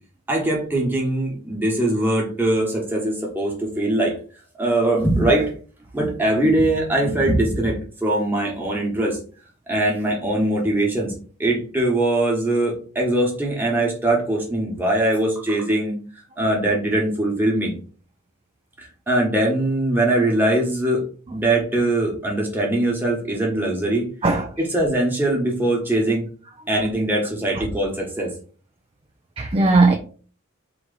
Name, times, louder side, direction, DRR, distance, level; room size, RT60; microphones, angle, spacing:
voice 1, 0.3-4.2 4.6-5.5 5.9-9.2 9.7-11.1 11.4-15.9 16.4-17.7 18.8-21.0 21.3-24.0 24.7-26.3 26.7-28.3, right 1 dB, 10° right, 1.2 m, -21 dB
voice 2, 24.2-24.5 27.5-27.6 29.4-30.0, right 3 dB, 25° right, 0.4 m, -18 dB
3.9 x 3.0 x 3.9 m
head